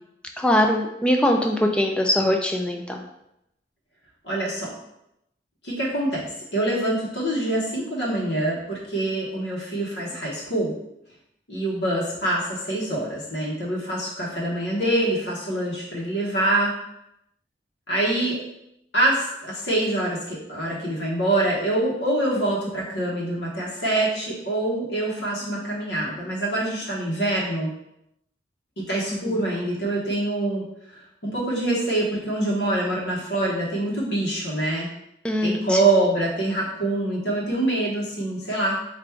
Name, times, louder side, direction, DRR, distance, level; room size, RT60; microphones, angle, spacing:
voice 1, 0.4-3.0 29.3-29.4 35.2-35.8, left 1 dB, 5° left, 2 dB, 0.3 m, -22 dB
voice 2, 4.2-4.7 5.6-10.7 11.5-16.7 17.9-18.4 18.9-27.7 28.8-34.9 35.4-38.8, right 1 dB, 75° left, -4 dB, 1.1 m, -25 dB
3.5 x 2.5 x 4.4 m, 0.82 s
head